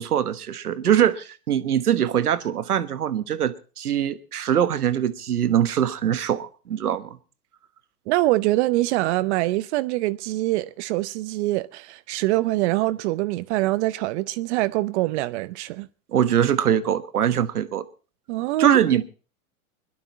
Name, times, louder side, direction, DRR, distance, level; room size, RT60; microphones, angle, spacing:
voice 1, 0.0-7.2 16.1-17.8 18.6-19.0, right 10 dB, 90° right, 1.4 m, -22 dB
voice 2, 8.1-15.9 18.3-18.8, right 18 dB, 50° right, 0.8 m, -24 dB
21.5 x 11.5 x 4.2 m
hypercardioid pair, 110°, 44 cm